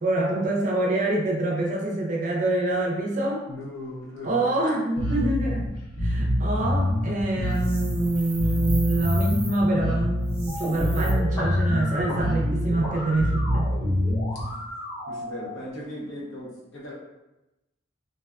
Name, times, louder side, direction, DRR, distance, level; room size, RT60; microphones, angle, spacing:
voice 1, 0.0-3.4 4.2-5.7 6.0-13.7, right 2 dB, 40° right, -1 dB, 0.4 m, -25 dB
voice 2, 3.5-4.6 15.1-16.9, left 1 dB, 75° left, -4 dB, 0.7 m, -37 dB
Bass guitar, 5.0-14.4, left 1 dB, 45° left, 0.7 m, -26 dB
sound 1, 7.5-9.6 10.2-11.1, right 2 dB, 20° right, 0.8 m, -40 dB
sound 2, 10.5-15.5, left 1 dB, 15° left, 0.9 m, -35 dB
2.5 x 2.2 x 2.3 m, 0.96 s
head